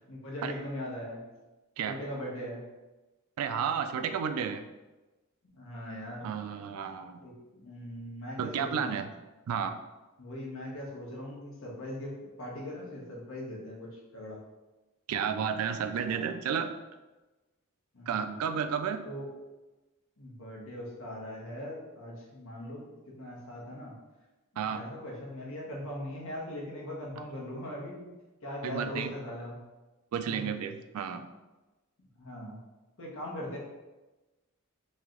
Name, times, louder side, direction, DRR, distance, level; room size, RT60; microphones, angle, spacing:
voice 1, 0.1-1.2 1.8-2.6 5.5-6.3 7.2-9.0 10.2-14.4 16.1-16.2 17.9-18.4 19.0-19.3 20.2-22.9 23.2-23.9 24.7-28.1 28.4-29.6 30.3-30.5 32.2-32.6 33.0-33.6, left 1 dB, 65° left, -3 dB, 1.1 m, -40 dB
voice 2, 3.4-4.7 6.2-7.2 8.4-9.1 9.5-9.8 15.1-16.8 18.1-19.0 24.6-24.9 28.6-29.1 30.1-31.2, right 7 dB, 85° right, 9 dB, 0.3 m, -32 dB
3.2 x 2.8 x 3.7 m, 1.1 s
head